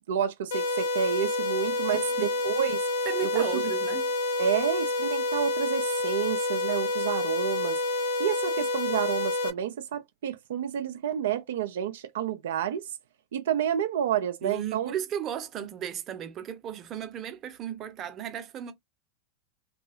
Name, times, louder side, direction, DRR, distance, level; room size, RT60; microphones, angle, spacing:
voice 1, 0.1-2.8 3.2-3.7 4.4-7.8 8.2-12.9 13.3-14.9, right 9 dB, 70° right, 0.4 m, -29 dB
sound 1, 0.5-9.5, left 2 dB, 65° left, 0.6 m, -28 dB
voice 2, 1.9-2.3 3.1-4.1 14.4-18.7, right 9 dB, 35° right, 0.7 m, -35 dB
2.7 x 2.4 x 2.4 m
hypercardioid pair, 90°, 0 cm